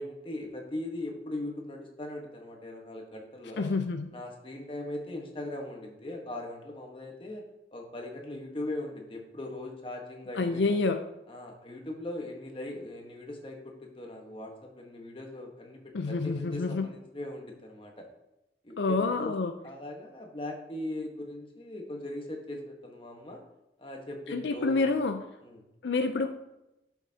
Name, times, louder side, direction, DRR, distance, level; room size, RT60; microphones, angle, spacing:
voice 1, 0.0-3.7 4.1-7.4 7.7-10.8 11.3-15.8 16.1-18.1 18.6-19.3 19.6-23.4 23.8-25.0 25.4-25.6, left 1 dB, 30° left, 1 dB, 1.2 m, -39 dB
voice 2, 3.6-4.1 10.4-11.0 15.9-16.9 18.8-19.5 24.3-25.2 25.8-26.4, left 3 dB, 80° left, 7 dB, 0.5 m, -28 dB
11.5 x 5.9 x 2.8 m, 0.93 s
head